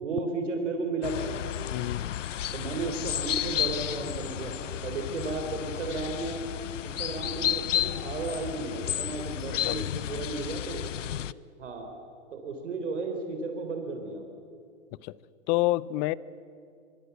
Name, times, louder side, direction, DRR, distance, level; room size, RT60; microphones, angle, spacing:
voice 1, 0.0-1.5 2.5-6.5 6.8-10.9 11.6-11.9 12.3-14.2, right 3 dB, 80° right, 5 dB, 3.8 m, -34 dB
sound 1, 1.0-11.3, left 10 dB, 90° left, 0.7 m, -32 dB
voice 2, 1.7-2.1 9.5-10.3 15.0-15.2 15.5-16.1, left 18 dB, 30° left, 21 dB, 0.6 m, -29 dB
24.5 x 24.0 x 8.1 m, 2.4 s
hypercardioid pair, 130°, 36 cm